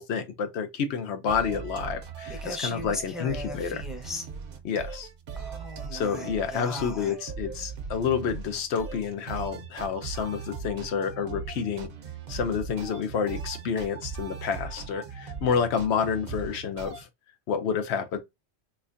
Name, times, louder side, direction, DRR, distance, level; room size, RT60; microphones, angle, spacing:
voice 1, 0.0-3.8 4.6-5.1 5.9-11.9 12.3-17.1 17.5-18.2, left 6 dB, 85° left, 0.9 m, -29 dB
sound 1, 1.3-17.0, right 5 dB, 60° right, 0.8 m, -39 dB
voice 2, 2.3-4.2 5.4-7.2, left 2 dB, ahead, 0.6 m, -37 dB
4.1 x 2.6 x 2.5 m
omnidirectional pair, 1.1 m